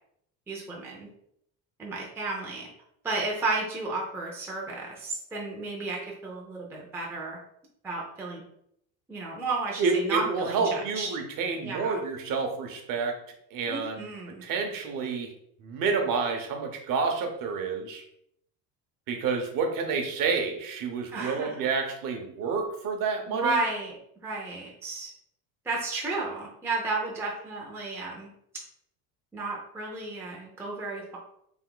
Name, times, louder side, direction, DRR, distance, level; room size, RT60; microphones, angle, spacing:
voice 1, 0.5-1.1 1.8-2.7 3.0-7.4 7.8-8.4 9.1-11.2 11.6-12.0 13.7-14.4 21.1-21.7 23.3-23.9 24.2-25.1 25.6-28.3 29.3-31.2, right 3 dB, 5° right, -2 dB, 0.5 m, -33 dB
voice 2, 9.8-13.1 13.5-14.1 14.4-15.3 15.6-18.0 19.1-23.6, right 5 dB, 50° right, 3 dB, 0.8 m, -29 dB
3.5 x 2.6 x 3.8 m, 0.73 s
cardioid pair, 150°, 43 cm